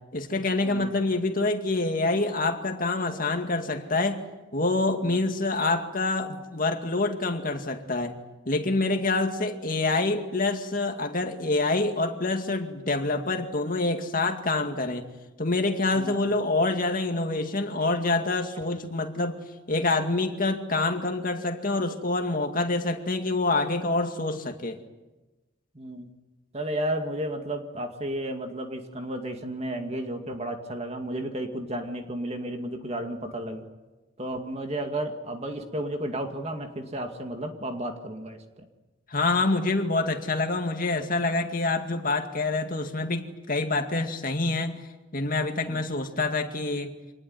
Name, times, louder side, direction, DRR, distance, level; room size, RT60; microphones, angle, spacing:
voice 1, 0.1-4.2 4.5-8.1 8.5-15.1 15.4-19.4 19.7-24.8 39.1-44.8 45.1-46.9, left 2 dB, 45° left, 5 dB, 2.3 m, -26 dB
voice 2, 25.8-26.1 26.5-33.7 34.2-38.4 45.7-45.8, right 1 dB, 35° right, 5 dB, 2.3 m, -33 dB
26.0 x 19.5 x 9.6 m, 1.1 s
head